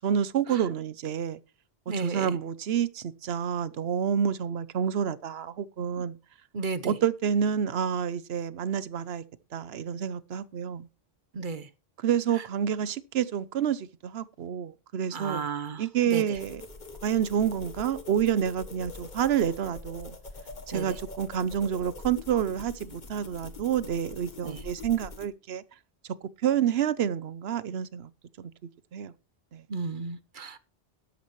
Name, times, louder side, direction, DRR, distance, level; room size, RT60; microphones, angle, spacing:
voice 1, 0.0-1.4 1.9-6.2 6.8-9.2 9.5-10.9 12.0-15.5 15.8-16.6 17.0-20.2 20.7-25.6 26.4-28.1 28.4-28.5 28.9-29.1 29.5-29.6, right 8 dB, 80° right, 1.0 m, -28 dB
voice 2, 1.9-2.3 6.5-7.0 11.3-11.7 15.1-16.2 20.7-21.0 24.4-24.6 29.7-30.6, right 4 dB, 55° right, 1.0 m, -34 dB
sound 1, 16.3-25.3, left 3 dB, 45° left, 1.4 m, -44 dB
12.5 x 11.5 x 3.1 m
omnidirectional pair, 1.1 m